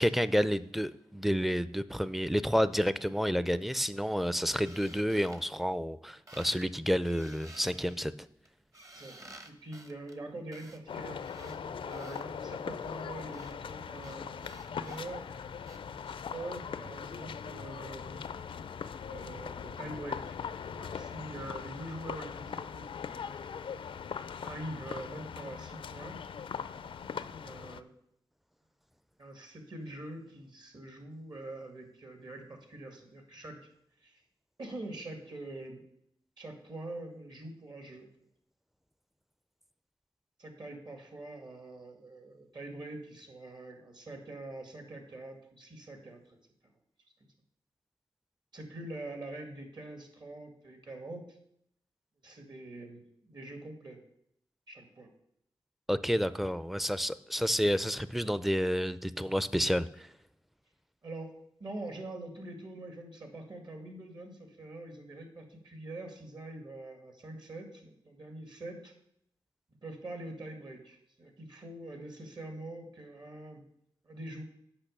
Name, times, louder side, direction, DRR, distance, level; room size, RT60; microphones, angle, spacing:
voice 1, 0.0-8.1 55.9-60.1, equal, ahead, 14 dB, 0.4 m, -30 dB
sound 1, 4.6-6.0 6.3-6.7 7.0-12.2 12.9-16.2, right 2 dB, 35° right, 1.1 m, -53 dB
voice 2, 8.9-15.2 16.3-18.3 18.9-20.4 20.7-23.2 24.4-26.2 27.2-27.9 29.2-33.6 34.0-34.2 34.6-35.8 36.4-38.1 40.4-46.4 48.5-51.4 52.2-54.0 54.7-55.1 61.0-61.3 61.6-68.9 69.8-73.6 74.0-74.4, right 2 dB, 55° right, 4 dB, 2.3 m, -44 dB
sound 2, 10.9-27.8, left 7 dB, 85° left, 0.4 m, -40 dB
8.6 x 5.8 x 6.7 m, 0.73 s
wide cardioid pair, 80°, 9 cm